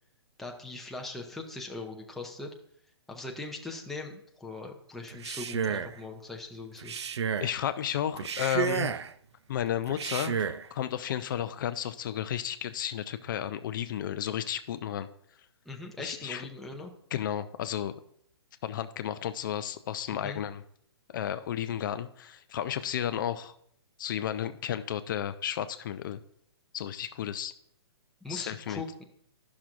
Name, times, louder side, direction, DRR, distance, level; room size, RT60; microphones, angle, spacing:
voice 1, 0.4-2.5 3.1-7.0 15.7-16.9 20.1-20.4 28.2-29.0, left 2 dB, ahead, 0 dB, 0.6 m, -40 dB
Male speech man speaking, 5.1-6.0 6.8-7.6 8.2-9.1 9.9-10.7, right 7 dB, 85° right, 0.4 m, -31 dB
voice 2, 7.4-9.0 9.5-15.1 16.0-16.4 17.1-17.9 18.6-20.6 21.1-23.5 24.0-26.2 26.7-27.5 28.3-28.8, left 10 dB, 50° left, 11 dB, 0.4 m, -33 dB
11.5 x 6.0 x 2.5 m, 0.67 s
hypercardioid pair, 140°, 14 cm